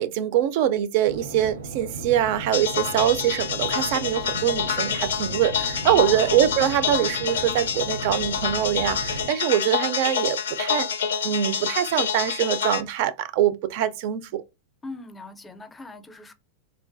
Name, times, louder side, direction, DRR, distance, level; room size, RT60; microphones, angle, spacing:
voice 1, 0.0-14.4, right 11 dB, 60° right, 0.3 m, -24 dB
sound 1, 1.1-9.3, right 2 dB, 90° right, 0.6 m, -36 dB
sound 2, 2.5-12.8, left 7 dB, 80° left, 0.4 m, -27 dB
voice 2, 5.8-6.4 14.8-16.3, left 2 dB, 15° left, 0.4 m, -40 dB
3.1 x 2.2 x 2.5 m
hypercardioid pair, 105°, 0 cm